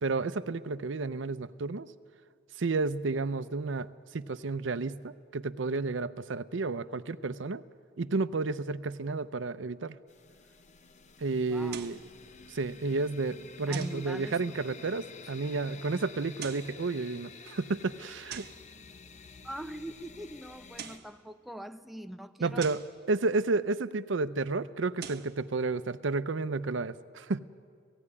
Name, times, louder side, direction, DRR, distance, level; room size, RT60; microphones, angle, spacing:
voice 1, 0.0-1.9 2.6-7.6 8.0-10.0 11.2-12.0 12.5-18.5 22.4-22.8 23.1-27.4, right 3 dB, 75° right, 0.6 m, -31 dB
sound 1, 10.1-21.0, left 5 dB, 40° left, 0.7 m, -51 dB
voice 2, 11.5-11.9 13.7-14.5 19.4-22.7, right 1 dB, ahead, 0.5 m, -42 dB
sound 2, 11.7-12.1 13.7-14.1 16.2-16.8 18.3-18.7 20.6-21.1 22.6-22.9 24.8-25.3, right 8 dB, 55° right, 1.1 m, -43 dB
16.5 x 16.0 x 9.7 m
head